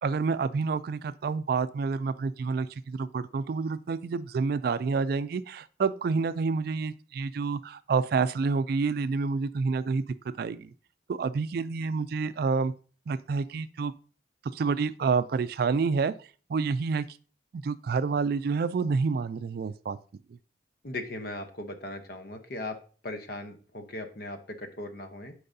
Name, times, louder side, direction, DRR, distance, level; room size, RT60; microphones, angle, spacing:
voice 1, 0.0-10.7 11.1-12.7 13.1-13.9 14.5-17.2 17.5-20.0 20.3-20.4, right 4 dB, 55° right, 15 dB, 0.3 m, -28 dB
voice 2, 20.8-22.8 23.0-25.3, left 2 dB, 55° left, 7 dB, 0.9 m, -38 dB
10.0 x 4.7 x 2.7 m, 0.39 s
head